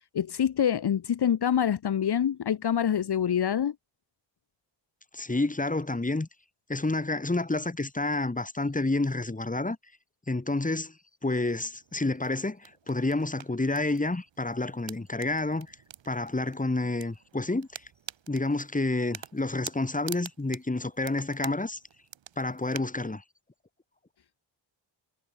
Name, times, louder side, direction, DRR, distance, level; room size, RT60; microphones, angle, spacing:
voice 1, 0.1-3.8, left 9 dB, 60° left, 1.7 m, -26 dB
voice 2, 5.1-6.3 6.7-9.8 10.3-10.9 11.2-15.8 16.1-17.8 18.3-21.8 22.4-23.2, left 2 dB, 20° left, 5.6 m, -29 dB
sound 1, 11.5-22.8, right 9 dB, 90° right, 7.2 m, -48 dB
cardioid pair, 100°, 44 cm